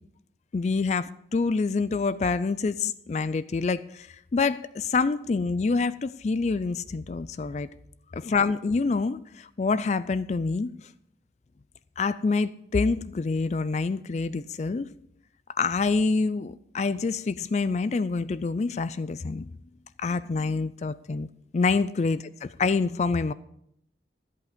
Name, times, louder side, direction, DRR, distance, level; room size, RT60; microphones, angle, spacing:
voice 1, 0.5-4.1 4.3-7.7 8.1-10.7 12.0-14.9 15.6-19.5 20.0-21.3 21.5-22.2 22.6-23.3, left 4 dB, 40° left, 16 dB, 0.3 m, -26 dB
14.0 x 8.4 x 5.1 m, 0.73 s
head